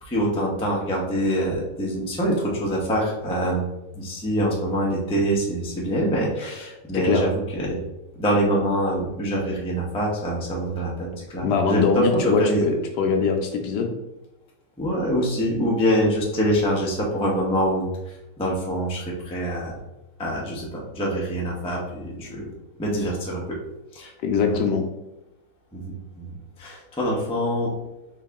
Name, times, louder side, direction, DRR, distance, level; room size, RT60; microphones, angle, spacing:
voice 1, 0.0-7.8 8.2-12.6 14.8-19.7 20.2-22.4 22.8-23.6 23.9-24.1 24.5-24.6 25.7-26.3 26.6-27.7, equal, 10° left, -4 dB, 0.4 m, -25 dB
voice 2, 6.9-7.2 11.4-13.9 24.2-24.8, left 5 dB, 75° left, 4 dB, 1.1 m, -22 dB
4.6 x 2.9 x 3.5 m, 0.93 s
omnidirectional pair, 2.0 m